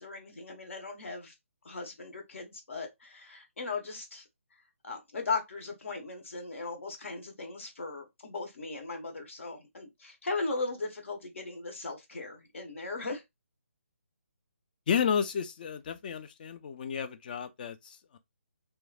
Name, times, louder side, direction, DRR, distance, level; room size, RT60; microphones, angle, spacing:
voice 1, 0.0-1.3 1.6-4.2 4.8-13.2, left 3 dB, 65° left, 1.2 m, -37 dB
voice 2, 14.9-18.2, left 7 dB, 40° left, 0.4 m, -32 dB
3.0 x 2.2 x 2.4 m
figure-of-eight pair, 150°, 8 cm